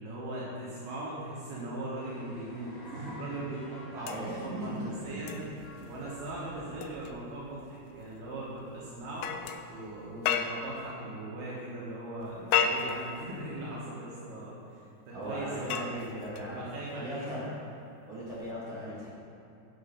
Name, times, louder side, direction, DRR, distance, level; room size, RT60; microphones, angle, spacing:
voice 1, 0.0-5.4 5.8-9.3 9.7-14.8 15.1-16.1 16.4-17.4 18.5-18.7, right 1 dB, 75° right, -7 dB, 3.1 m, -39 dB
sound 1, 1.9-10.1, left 1 dB, 65° left, 3.8 m, -52 dB
sound 2, 3.3-8.3, left 1 dB, 45° left, 2.4 m, -54 dB
voice 2, 3.9-5.5 15.1-16.6 17.0-17.5 18.1-19.2, right 1 dB, 60° right, -8 dB, 1.3 m, -39 dB
sound 3, 4.0-10.9 12.2-13.8 15.2-16.8 18.3-18.5, left 7 dB, 85° left, 2.2 m, -35 dB
8.1 x 6.5 x 5.0 m, 2.8 s
omnidirectional pair, 4.6 m